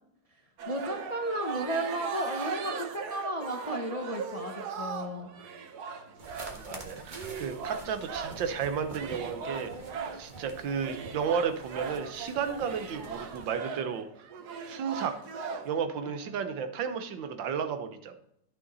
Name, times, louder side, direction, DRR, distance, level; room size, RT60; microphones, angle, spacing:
sound 1, 0.6-8.5 8.9-10.3 10.8-15.9, right 6 dB, 65° right, 1.3 m, -39 dB
voice 1, 0.7-5.3 16.3-16.4, right 1 dB, 30° left, 2 dB, 0.6 m, -34 dB
sound 2, 6.2-13.5, right 2 dB, 30° right, 1.2 m, -45 dB
voice 2, 6.5-9.7 10.1-14.3 14.7-15.2 15.6-18.2, right 6 dB, 80° right, 8 dB, 1.6 m, -33 dB
11.0 x 6.2 x 4.0 m, 0.77 s
omnidirectional pair, 2.0 m